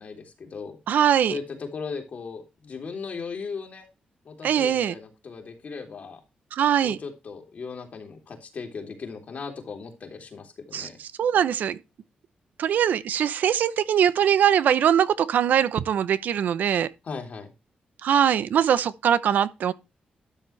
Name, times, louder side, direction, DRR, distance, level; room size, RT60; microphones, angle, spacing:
voice 1, 0.0-0.8 1.3-3.9 4.2-6.2 6.8-11.0 17.0-17.5, left 5 dB, 55° left, 3.3 m, -37 dB
voice 2, 0.9-1.3 4.4-4.9 6.5-7.0 10.7-10.9 11.2-11.8 12.6-16.9 18.0-19.7, right 9 dB, 80° right, 0.8 m, -22 dB
12.5 x 6.9 x 3.3 m
cardioid pair, 90°, 3 cm